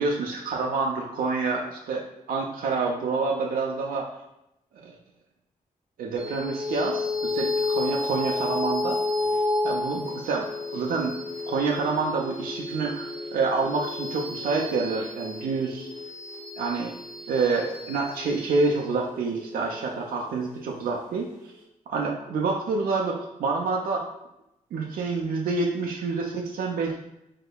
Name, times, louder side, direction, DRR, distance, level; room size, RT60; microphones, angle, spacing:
voice 1, 0.0-4.1 4.8-5.0 6.0-9.0 9.6-11.1 11.5-15.9 16.6-16.9 17.3-21.3 21.9-24.1 24.7-27.0, right 4 dB, 80° right, 0 dB, 0.4 m, -27 dB
sound 1, 6.2-20.9, left 3 dB, 80° left, 1.4 m, -31 dB
3.5 x 3.1 x 2.3 m, 0.86 s
cardioid pair, 60°, 14 cm